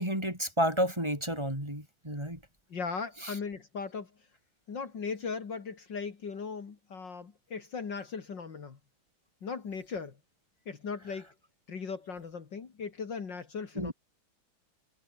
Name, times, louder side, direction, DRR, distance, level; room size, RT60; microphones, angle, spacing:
voice 1, 0.0-2.4 3.2-3.4 13.8-13.9, equal, 10° right, 6.9 m, -31 dB
voice 2, 2.7-4.1 4.7-8.8 9.4-10.2 10.7-11.3 11.7-13.9, left 5 dB, 60° left, 2.9 m, -38 dB
omnidirectional pair, 2.3 m